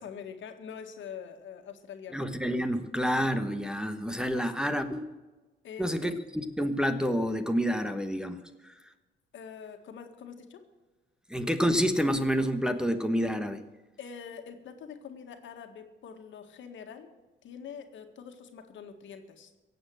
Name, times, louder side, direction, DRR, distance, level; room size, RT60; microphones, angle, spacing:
voice 1, 0.0-2.2 4.3-4.5 5.6-6.2 9.3-10.6 14.0-17.1 17.4-19.5, left 7 dB, 70° left, 6 dB, 1.8 m, -44 dB
voice 2, 2.1-5.1 5.8-8.7 11.3-13.6, equal, 5° right, 9 dB, 1.2 m, -28 dB
17.0 x 7.9 x 7.7 m, 1.2 s
cardioid pair, 90°, 20 cm